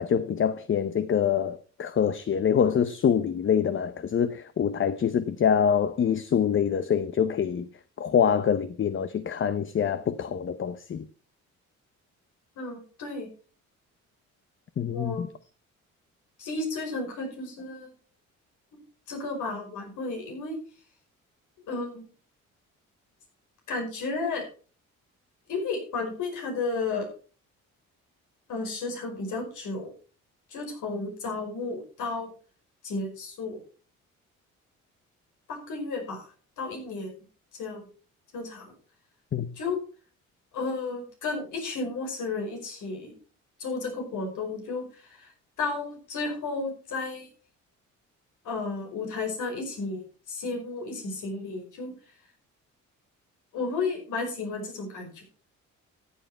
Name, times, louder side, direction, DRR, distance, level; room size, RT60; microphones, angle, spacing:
voice 1, 0.0-7.7 8.0-11.0 14.8-15.3 39.3-39.5, left 8 dB, 40° left, 0.8 m, -25 dB
voice 2, 12.6-13.3 14.8-15.2 16.4-17.9 19.1-20.6 21.7-22.0 23.7-24.4 25.5-27.1 28.5-29.9 30.5-32.3 32.8-33.6 35.5-36.3 36.6-37.1 37.6-37.9 38.3-38.7 39.6-39.8 40.5-43.1 43.6-45.3 45.6-47.3 48.4-51.9 53.5-55.2, left 3 dB, 80° left, 5.4 m, -33 dB
14.0 x 8.0 x 4.4 m
cardioid pair, 90°, 30 cm